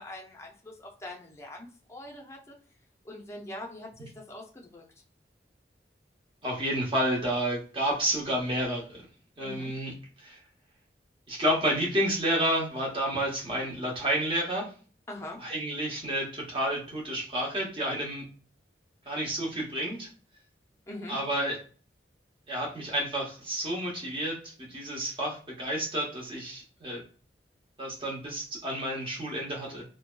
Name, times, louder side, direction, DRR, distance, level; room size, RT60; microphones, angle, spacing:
voice 1, 0.0-2.5 3.0-4.8 9.4-9.7 15.1-15.4 20.9-21.2, left 1 dB, 15° left, -1 dB, 0.5 m, -43 dB
voice 2, 6.4-9.0 9.4-10.4 11.3-14.7 15.4-18.2 19.1-20.1 21.1-21.6 22.5-27.0 27.8-29.8, right 1 dB, 30° right, -2 dB, 0.8 m, -30 dB
2.6 x 2.1 x 2.2 m, 0.39 s
head